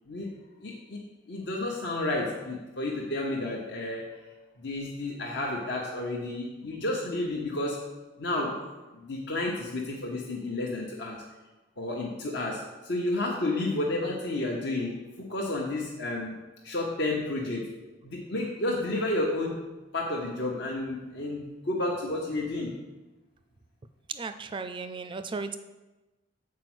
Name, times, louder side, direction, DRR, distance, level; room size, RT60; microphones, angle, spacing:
voice 1, 0.6-1.0 1.3-4.2 4.6-11.2 11.8-16.4 16.6-17.7 18.0-22.8, left 2 dB, 60° left, -3 dB, 1.1 m, -31 dB
voice 2, 24.1-25.6, right 4 dB, 25° right, 10 dB, 0.4 m, -35 dB
7.5 x 4.8 x 6.1 m, 1.1 s
head